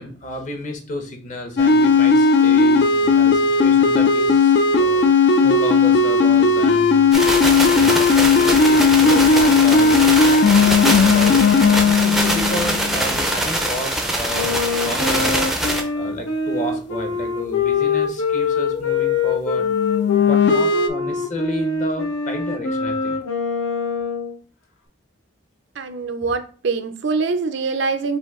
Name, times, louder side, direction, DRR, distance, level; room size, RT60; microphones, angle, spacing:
voice 1, 0.0-5.1 5.4-7.1 7.7-11.4 11.8-15.3 15.9-19.7 20.2-23.2, left 1 dB, 35° left, 0.8 m, -31 dB
sound 1, 1.6-13.3 19.6-20.9, left 4 dB, 55° left, 0.4 m, -16 dB
sound 2, 7.1-15.8, right 1 dB, ahead, 0.5 m, -23 dB
Wind instrument woodwind instrument, 14.3-24.3, left 5 dB, 85° left, 0.9 m, -23 dB
voice 2, 25.8-28.2, right 4 dB, 55° right, 0.4 m, -24 dB
5.0 x 2.6 x 3.6 m
head